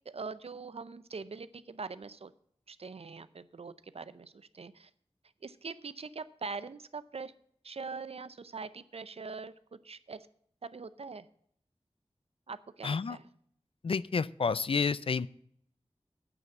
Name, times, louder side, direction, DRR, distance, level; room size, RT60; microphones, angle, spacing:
voice 1, 0.1-2.3 2.7-4.9 5.4-7.3 7.6-10.3 10.6-11.3 12.5-13.3, right 4 dB, 70° right, 14 dB, 0.6 m, -43 dB
voice 2, 12.8-13.2 13.8-15.3, left 5 dB, 60° left, 18 dB, 0.4 m, -30 dB
9.3 x 5.9 x 8.1 m, 0.66 s
wide cardioid pair, 70°, 11 cm